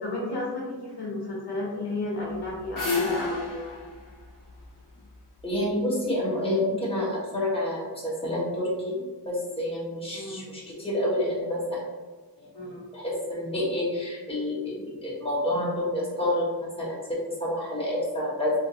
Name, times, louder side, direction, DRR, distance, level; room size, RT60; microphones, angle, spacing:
voice 1, 0.0-3.8 10.1-10.4 12.5-12.9, left 2 dB, 75° left, -4 dB, 1.0 m, -33 dB
sound 1, 2.3-5.4, left 3 dB, 50° left, 0.9 m, -31 dB
voice 2, 5.4-11.8 12.4-12.5 12.9-18.5, left 1 dB, 15° left, -6 dB, 1.2 m, -28 dB
3.4 x 2.7 x 2.7 m, 1.3 s
wide cardioid pair, 65°, 41 cm